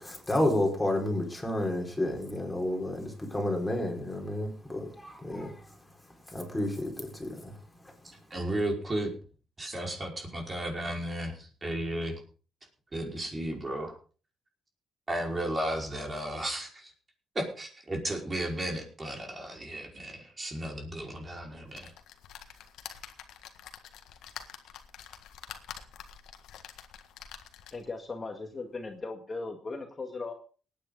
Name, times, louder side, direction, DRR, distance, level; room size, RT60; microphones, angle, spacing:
voice 1, 0.0-5.8 6.0-7.9, left 1 dB, 10° left, 1 dB, 5.0 m, -31 dB
voice 2, 8.0-9.1 9.6-12.2 12.9-13.9 15.1-16.9 17.3-21.9, right 1 dB, 25° right, 1 dB, 5.1 m, -34 dB
sound 1, 21.7-28.0 28.5-28.6 28.9-29.0, left 9 dB, 85° left, 1.6 m, -47 dB
voice 3, 27.7-30.3, left 3 dB, 30° left, 4 dB, 1.9 m, -38 dB
19.5 x 9.6 x 4.0 m, 0.37 s
cardioid pair, 90°, 0 cm